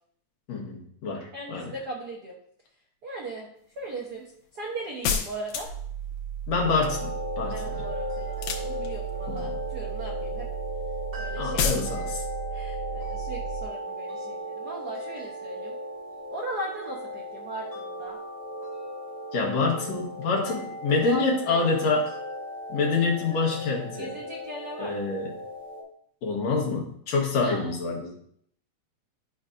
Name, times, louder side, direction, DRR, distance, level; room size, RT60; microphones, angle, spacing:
voice 1, 0.5-1.7 6.5-7.9 9.3-9.5 11.4-12.2 19.3-22.1 22.7-24.1 24.8-25.3 26.2-28.1, left 4 dB, 65° left, 0 dB, 2.4 m, -27 dB
voice 2, 1.3-2.3 3.0-3.5 3.8-5.7 7.5-10.5 11.2-11.7 12.5-15.7 16.3-18.2 21.0-21.7 24.0-24.9 27.4-27.8, right 1 dB, 80° right, -3 dB, 0.8 m, -38 dB
sound 1, 5.0-5.9 8.3-9.2 11.6-11.9, left 6 dB, 90° left, 2.3 m, -28 dB
sound 2, 5.6-13.6, right 10 dB, 45° right, 3.0 m, -35 dB
sound 3, 6.6-25.8, left 1 dB, 25° right, 1.5 m, -36 dB
11.0 x 5.2 x 2.5 m, 0.65 s
omnidirectional pair, 3.4 m